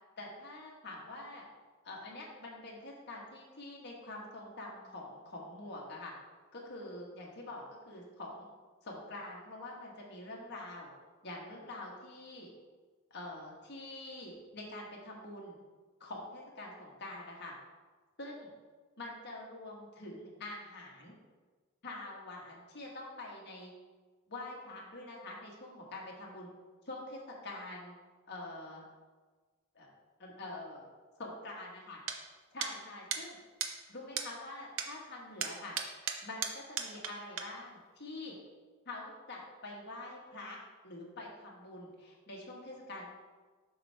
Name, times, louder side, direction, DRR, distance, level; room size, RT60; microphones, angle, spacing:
voice 1, 0.2-1.4 1.8-6.1 6.5-8.5 8.8-10.9 11.2-12.5 13.1-15.6 16.0-17.5 18.2-18.5 19.0-21.1 21.8-23.7 24.3-26.5 26.8-27.9 28.3-28.8 29.7-29.9 30.2-30.9 31.2-32.0 32.5-33.4 33.9-35.8 36.2-38.3 38.8-40.6 40.8-43.1, left 2 dB, 50° left, -3 dB, 1.5 m, -45 dB
sound 1, 32.1-32.2 32.6-32.7 33.1-33.2 33.6-33.7 34.2-34.3 34.8-34.9 35.4-37.1 37.4-37.5, right 7 dB, 60° right, 0.6 m, -35 dB
7.5 x 5.5 x 3.4 m, 1.4 s
head